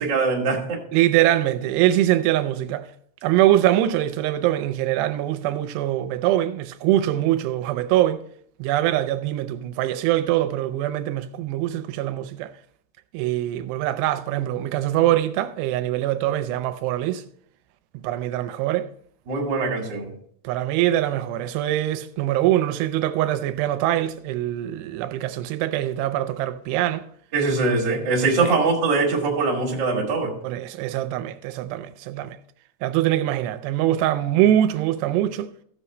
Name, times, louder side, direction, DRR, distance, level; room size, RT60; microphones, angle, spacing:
voice 1, 0.0-0.8 19.3-20.1 27.3-30.3, right 3 dB, 35° right, 2.1 m, -22 dB
voice 2, 0.9-2.9 3.2-8.2 8.6-12.5 13.1-17.2 17.9-18.9 20.4-27.0 28.4-28.5 30.4-32.4 32.8-35.5, right 13 dB, 90° right, 2.8 m, -23 dB
15.0 x 6.9 x 3.2 m
omnidirectional pair, 4.7 m